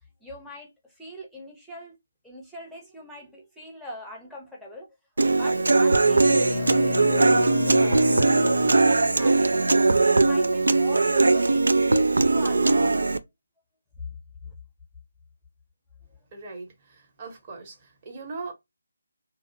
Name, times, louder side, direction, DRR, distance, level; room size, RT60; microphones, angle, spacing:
voice 1, 0.2-2.0 2.2-8.1 8.3-9.6 10.0-13.0 14.0-14.1 14.4-14.5, left 1 dB, ahead, 0.7 m, -42 dB
Human voice / Acoustic guitar, 5.2-13.2, right 3 dB, 70° right, 0.3 m, -20 dB
Bowed string instrument, 5.9-9.5, left 4 dB, 45° left, 0.5 m, -32 dB
voice 2, 16.3-18.5, right 3 dB, 30° right, 0.9 m, -40 dB
2.5 x 2.0 x 2.5 m
figure-of-eight pair, 155°, 0 cm